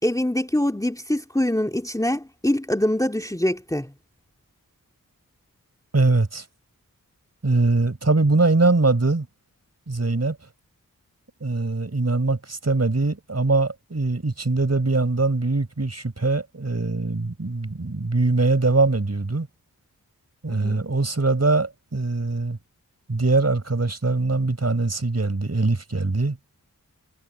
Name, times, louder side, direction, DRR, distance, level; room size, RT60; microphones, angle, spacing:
voice 1, 0.0-3.9 20.5-20.8, left 1 dB, 10° left, 2.4 m, -24 dB
voice 2, 5.9-6.4 7.4-9.3 9.9-10.4 11.4-19.5 20.4-22.6 23.1-26.4, right 3 dB, 45° right, 5.0 m, -22 dB
wide cardioid pair, 50°, 34 cm